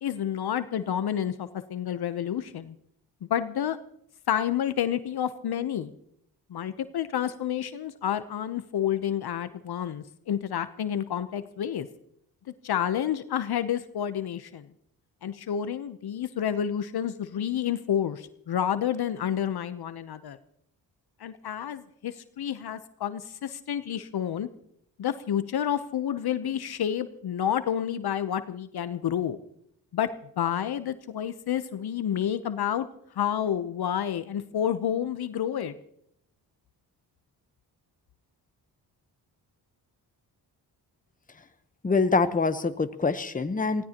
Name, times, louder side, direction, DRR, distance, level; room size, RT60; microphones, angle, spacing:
voice 1, 0.0-2.7 3.3-3.8 4.3-5.9 6.5-11.9 12.6-14.7 15.2-20.4 21.2-24.5 25.0-29.4 29.9-30.1 30.4-32.9 33.2-35.7, left 9 dB, 60° left, 12 dB, 0.9 m, -29 dB
voice 2, 41.8-43.8, left 4 dB, 20° left, 10 dB, 1.0 m, -25 dB
23.5 x 16.5 x 3.0 m, 0.74 s
cardioid pair, 70°, 42 cm